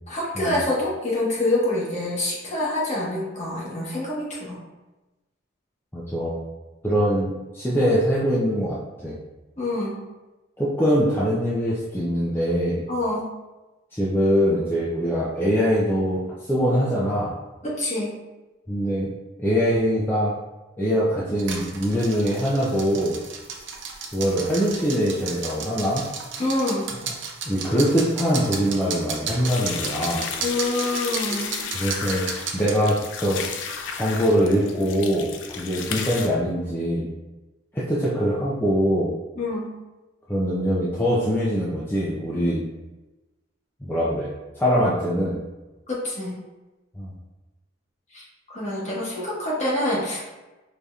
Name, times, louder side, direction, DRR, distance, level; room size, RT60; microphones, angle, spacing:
voice 1, 0.1-4.6 9.6-10.0 12.9-13.3 17.6-18.1 26.4-26.9 30.4-31.6 39.3-39.7 45.9-46.4 48.1-50.3, left 1 dB, 35° left, -6 dB, 1.2 m, -26 dB
voice 2, 5.9-6.4 6.8-9.2 10.6-12.8 13.9-17.3 18.7-19.1 19.4-20.3 20.8-23.2 24.1-26.0 27.5-30.3 31.7-32.3 32.5-33.4 33.9-37.1 37.7-39.1 40.3-42.6 43.8-44.3 44.6-45.4 47.0-47.1, equal, 10° left, -8 dB, 0.5 m, -23 dB
sound 1, 21.4-32.8, right 5 dB, 65° right, 0.6 m, -34 dB
sound 2, 29.5-36.3, left 6 dB, 65° left, 0.4 m, -33 dB
4.9 x 2.8 x 2.3 m, 1.1 s
head